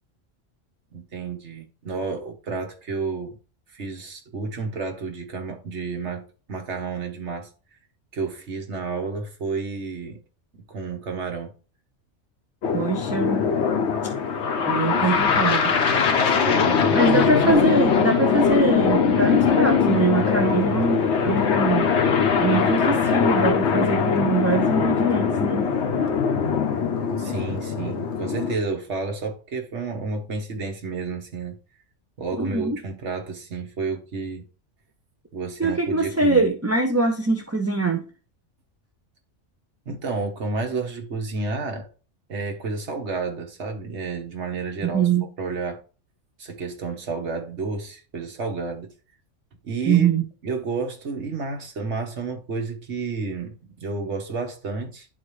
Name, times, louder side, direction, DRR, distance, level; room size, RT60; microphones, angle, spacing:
voice 1, 0.9-3.4 3.7-7.5 8.1-10.2 10.5-11.5 14.9-15.3 16.3-17.1 27.2-31.6 32.2-34.5 35.3-36.4 39.9-41.9 42.3-45.1 45.4-45.8 46.4-48.9 49.6-50.1 50.4-55.1, right 4 dB, 65° right, 1.6 m, -31 dB
sound 1, 12.6-28.6, left 6 dB, 65° left, 1.1 m, -21 dB
voice 2, 12.7-13.5 14.7-15.7 16.9-21.9 22.4-25.7 32.4-32.8 35.6-38.0 44.8-45.3 49.9-50.2, right 3 dB, 20° right, 0.5 m, -23 dB
10.5 x 4.2 x 3.2 m
omnidirectional pair, 1.2 m